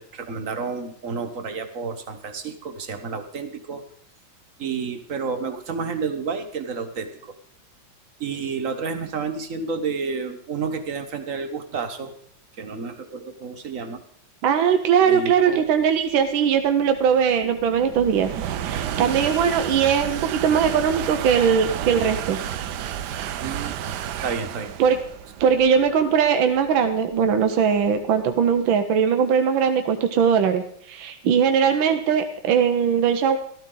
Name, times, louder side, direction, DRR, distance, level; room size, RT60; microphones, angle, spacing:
voice 1, 0.0-3.8 4.6-7.3 8.2-12.1 12.6-14.0 15.1-15.6 23.4-24.7, right 5 dB, 45° right, 6 dB, 1.5 m, -30 dB
voice 2, 14.4-18.3 18.6-22.4 24.8-25.0 25.4-33.4, right 7 dB, 85° right, 7 dB, 1.7 m, -20 dB
sound 1, 15.6-28.6, right 10 dB, 70° right, 1.2 m, -32 dB
14.0 x 13.5 x 3.8 m, 0.64 s
omnidirectional pair, 2.1 m